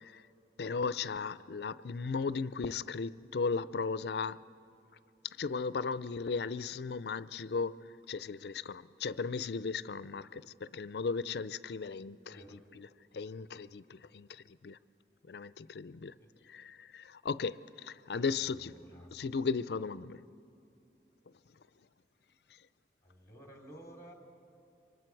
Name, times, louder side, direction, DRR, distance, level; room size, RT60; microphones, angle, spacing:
voice 1, 0.6-4.4 5.4-7.8 8.1-12.4 12.8-12.9 13.1-14.8 15.3-16.1 16.5-18.7 19.1-20.2, left 4 dB, 70° left, 0.5 m, -36 dB
voice 2, 12.3-12.6 16.2-16.3 18.1-19.2 23.0-24.1, right 1 dB, 20° left, 2.9 m, -54 dB
27.5 x 24.5 x 4.7 m
head